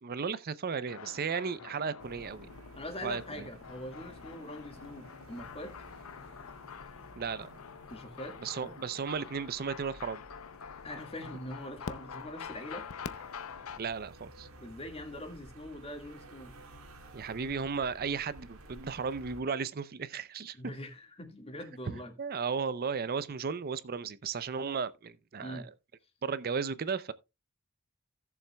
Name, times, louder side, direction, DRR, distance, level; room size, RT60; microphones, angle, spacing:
voice 1, 0.0-2.5 3.0-3.5 7.2-7.6 8.4-10.2 13.8-14.5 17.1-20.7 21.9-25.7 26.2-27.1, right 5 dB, 45° right, 0.5 m, -35 dB
sound 1, 0.9-13.8, left 6 dB, 85° left, 0.6 m, -46 dB
sound 2, 2.0-19.4, right 1 dB, 90° right, 1.9 m, -54 dB
voice 2, 2.8-5.7 7.9-8.3 8.6-8.7 10.8-12.9 14.6-16.5 20.6-22.4 25.4-25.7, left 1 dB, 30° left, 1.8 m, -43 dB
16.5 x 7.1 x 2.3 m
head